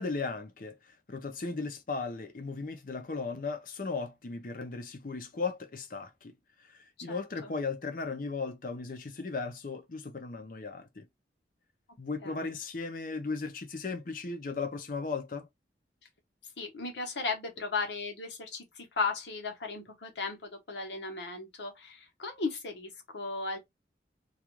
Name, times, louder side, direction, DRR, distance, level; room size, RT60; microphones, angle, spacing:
voice 1, 0.0-11.1 12.0-15.5, left 4 dB, 50° left, 0.6 m, -36 dB
voice 2, 7.0-7.5 12.2-12.5 16.6-23.6, left 4 dB, 85° left, 1.0 m, -36 dB
2.4 x 2.4 x 3.0 m
head